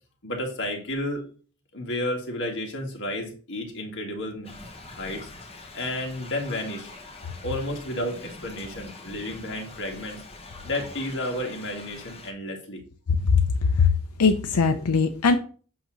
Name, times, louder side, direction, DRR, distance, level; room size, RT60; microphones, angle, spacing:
voice 1, 0.2-1.2 1.7-4.5 4.9-5.3 5.7-6.9 7.4-10.2 10.6-12.8, left 1 dB, 55° left, 1 dB, 1.8 m, -31 dB
Thunder / Rain, 4.4-12.3, left 2 dB, 25° left, 1.2 m, -44 dB
voice 2, 13.2-13.9 14.2-15.4, left 5 dB, 90° left, 6 dB, 0.6 m, -20 dB
8.1 x 2.9 x 6.1 m, 0.41 s
head